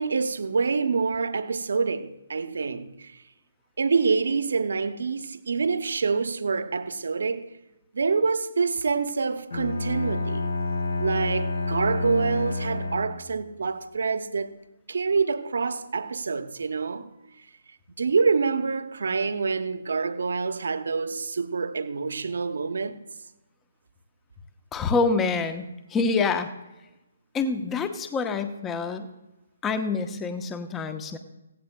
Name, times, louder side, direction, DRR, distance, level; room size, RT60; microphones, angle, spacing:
voice 1, 0.0-3.1 3.8-7.5 7.9-10.5 11.0-14.6 14.9-17.1 18.0-23.0, right 4 dB, 60° right, 0.9 m, -26 dB
Bowed string instrument, 9.5-13.5, left 3 dB, 70° left, 1.8 m, -29 dB
voice 2, 24.7-26.5 27.3-29.1 29.6-31.2, left 4 dB, 15° left, 0.9 m, -26 dB
16.5 x 15.5 x 2.2 m
figure-of-eight pair, 135°, 0 cm